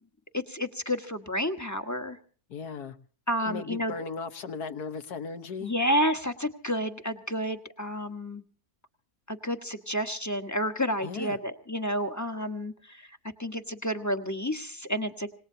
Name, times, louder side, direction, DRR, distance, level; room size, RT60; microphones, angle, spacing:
voice 1, 0.3-2.2 3.3-3.9 5.6-8.4 9.3-15.3, equal, 10° left, 7 dB, 1.1 m, -30 dB
voice 2, 2.5-3.0 3.4-5.7 11.0-11.4, left 5 dB, 85° left, 8 dB, 1.8 m, -37 dB
26.5 x 19.5 x 2.8 m, 0.42 s
omnidirectional pair, 1.6 m